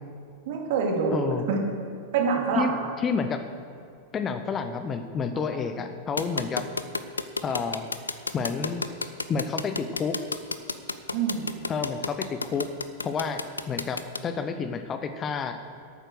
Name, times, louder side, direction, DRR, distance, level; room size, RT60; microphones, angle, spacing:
voice 1, 0.5-1.6 2.1-2.8 5.7-5.8 11.1-11.4, right 5 dB, 50° right, 1 dB, 2.2 m, -26 dB
voice 2, 1.1-1.4 2.5-3.4 4.1-6.6 7.4-7.9 8.3-8.9 9.3-10.1 11.7-12.7 13.0-13.4 13.7-15.6, left 5 dB, 25° left, 8 dB, 0.7 m, -29 dB
sound 1, 6.2-14.2, left 3 dB, 80° left, 0.5 m, -30 dB
12.0 x 8.9 x 6.4 m, 2.5 s
figure-of-eight pair, 90°, 0 cm